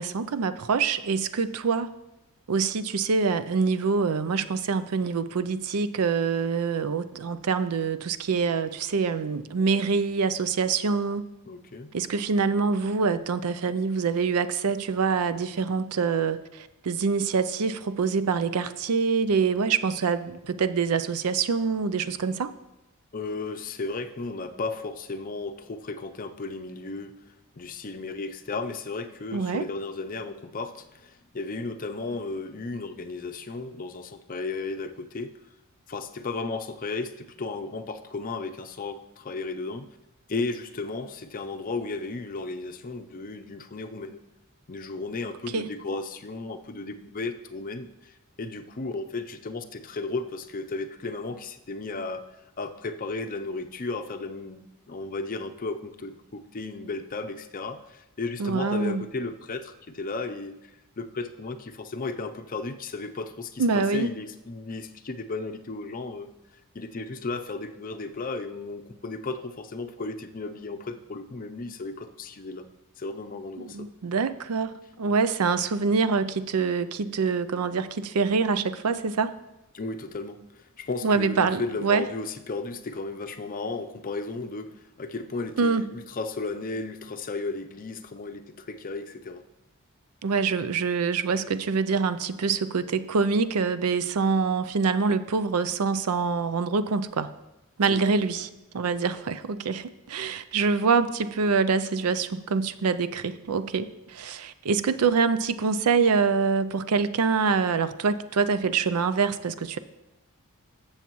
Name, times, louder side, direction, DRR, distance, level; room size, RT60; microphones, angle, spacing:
voice 1, 0.0-1.9 2.5-11.2 11.9-22.5 29.3-29.7 45.5-45.7 58.4-59.1 63.6-64.1 73.6-79.4 81.0-82.0 85.6-85.9 90.2-97.3 97.8-98.5 98.7-109.8, right 5 dB, 85° right, 12 dB, 0.5 m, -25 dB
voice 2, 11.5-11.9 23.1-35.4 35.9-40.0 40.3-44.2 44.7-60.7 61.0-66.3 66.7-72.6 73.0-73.9 79.7-89.4 97.9-98.4, left 3 dB, 40° left, 8 dB, 0.6 m, -34 dB
14.0 x 7.2 x 3.1 m, 0.95 s
head